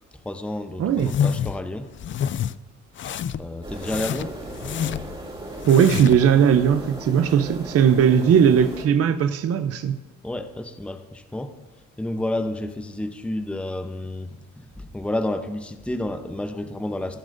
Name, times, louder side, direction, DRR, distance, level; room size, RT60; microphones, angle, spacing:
voice 1, 0.2-1.9 3.4-4.3 10.2-11.5 12.0-14.3 14.6-17.2, left 1 dB, 5° left, 7 dB, 0.7 m, -30 dB
voice 2, 0.8-1.1 5.7-10.0, right 8 dB, 50° right, 9 dB, 0.6 m, -18 dB
sound 1, 1.0-1.6 2.0-2.5 3.0-3.5 3.8-5.2 5.6-6.3, left 8 dB, 40° left, 0.4 m, -27 dB
sound 2, 3.6-8.8, right 1 dB, 20° right, 3.3 m, -37 dB
18.0 x 7.3 x 2.6 m, 1.1 s
cardioid pair, 90°, 30 cm